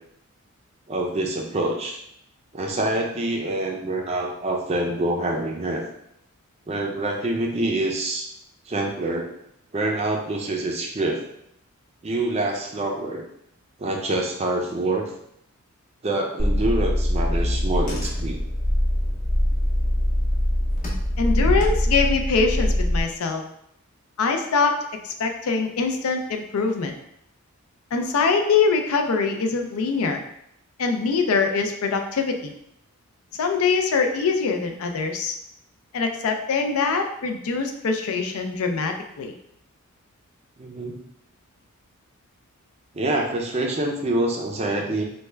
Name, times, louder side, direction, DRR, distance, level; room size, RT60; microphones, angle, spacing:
voice 1, 0.9-2.0 2.5-5.8 6.7-8.3 8.7-9.3 9.7-11.2 12.0-13.2 13.8-15.0 16.0-18.4 40.6-41.0 42.9-45.0, right 2 dB, 30° right, 1 dB, 0.4 m, -26 dB
Car / Engine, 16.4-23.0, left 1 dB, 35° left, 0.6 m, -23 dB
voice 2, 21.2-23.4 24.2-24.7 25.0-26.9 27.9-30.2 30.8-32.5 33.4-35.4 35.9-39.3, left 4 dB, 80° left, 5 dB, 0.4 m, -23 dB
3.3 x 2.2 x 3.2 m, 0.75 s
head